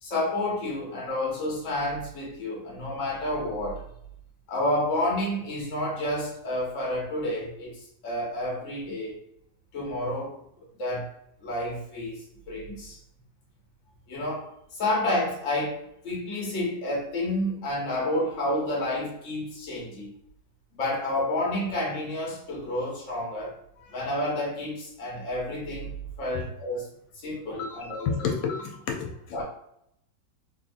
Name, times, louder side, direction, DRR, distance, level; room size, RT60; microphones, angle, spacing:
voice 1, 0.0-3.8 4.5-9.2 9.7-10.4 10.8-11.1 11.4-13.0 14.1-14.5 14.7-20.1 20.7-23.5 23.8-25.9 26.2-28.3 29.3-29.4, left 1 dB, 45° left, -4 dB, 1.2 m, -30 dB
voice 2, 27.5-29.4, left 6 dB, 85° left, 1 dB, 1.4 m, -31 dB
3.4 x 2.7 x 2.5 m, 0.74 s
omnidirectional pair, 2.1 m